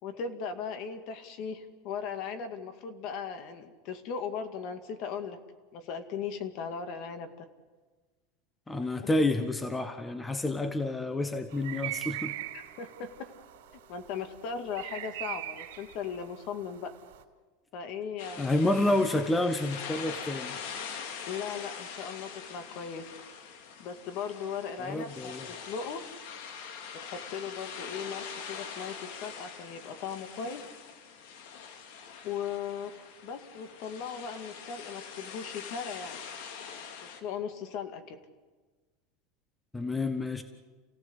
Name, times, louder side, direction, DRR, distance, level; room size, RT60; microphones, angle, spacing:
voice 1, 0.0-5.4 5.7-7.5 9.0-9.1 12.5-13.3 13.9-16.9 17.7-18.7 21.3-23.1 23.8-26.0 26.9-30.6 32.2-32.9 33.2-36.2 37.0-38.2, left 6 dB, 45° left, 9 dB, 2.3 m, -38 dB
voice 2, 8.7-12.3 18.4-20.7 24.8-25.5 39.7-40.4, left 2 dB, 10° left, 9 dB, 1.1 m, -29 dB
sound 1, 11.5-17.2, right 15 dB, 80° right, 3.5 m, -41 dB
sound 2, 18.2-37.2, left 6 dB, 65° left, 2.8 m, -43 dB
29.0 x 17.0 x 8.2 m, 1.3 s
supercardioid pair, 160°, 0 cm